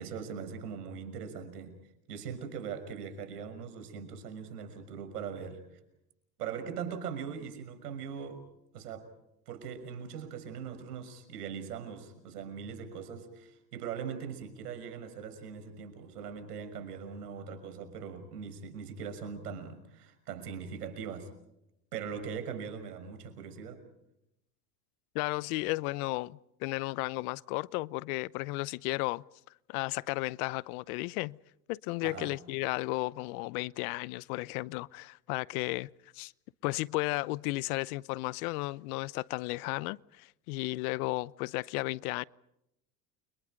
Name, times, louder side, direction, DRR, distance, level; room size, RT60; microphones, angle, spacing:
voice 1, 0.0-1.8 2.1-5.6 6.4-8.4 8.7-9.1 9.5-21.3 21.9-23.8 32.0-32.4, right 6 dB, 90° right, 6.1 m, -41 dB
voice 2, 25.1-29.2 29.7-31.4 31.7-36.3 36.6-42.2, left 22 dB, 70° left, 0.8 m, -34 dB
30.0 x 26.0 x 5.2 m
supercardioid pair, 95°, 45 cm